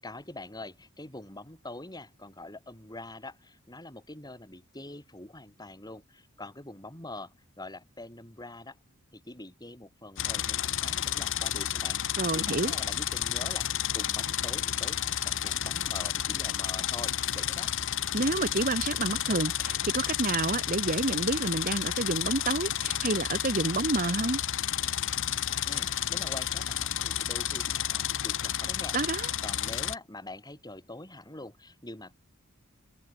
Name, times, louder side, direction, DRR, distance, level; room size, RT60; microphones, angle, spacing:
voice 1, 0.0-8.8 9.1-17.7 25.4-29.0 29.4-32.1, left 2 dB, 20° left, 7.6 m, -44 dB
sound 1, 10.2-30.0, left 11 dB, 65° left, 1.1 m, -31 dB
voice 2, 12.2-12.7 18.1-24.4 28.9-29.3, right 2 dB, 40° right, 1.3 m, -29 dB
head